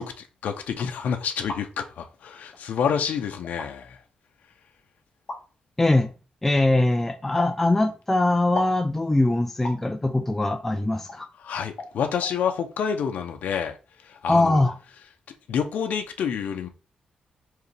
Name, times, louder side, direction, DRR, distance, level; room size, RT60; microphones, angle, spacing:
voice 1, 0.0-4.0 11.4-13.8 14.0-14.6 15.5-16.7, left 7 dB, 80° left, 0.7 m, -28 dB
sound 1, 1.2-1.6 2.5-2.6 3.4-3.7 5.3-5.4 7.4-7.6 8.6-8.8 9.6-9.8 11.1-11.2 11.8-11.9 12.2-12.3, left 2 dB, 45° left, 1.5 m, -34 dB
voice 2, 5.8-6.1 6.4-11.3 14.3-14.7, left 2 dB, 10° left, 0.3 m, -22 dB
4.7 x 3.2 x 3.3 m
wide cardioid pair, 155°, 3 cm